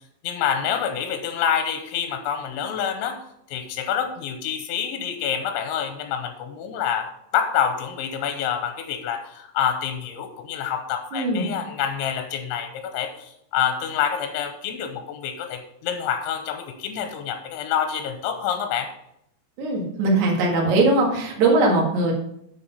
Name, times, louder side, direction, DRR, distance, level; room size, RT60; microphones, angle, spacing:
voice 1, 0.2-3.2 3.5-18.9, left 8 dB, 90° left, 7 dB, 3.1 m, -27 dB
voice 2, 11.1-11.5 19.6-22.1, right 2 dB, 55° right, -1 dB, 2.4 m, -20 dB
7.1 x 7.1 x 5.4 m, 0.78 s
omnidirectional pair, 5.3 m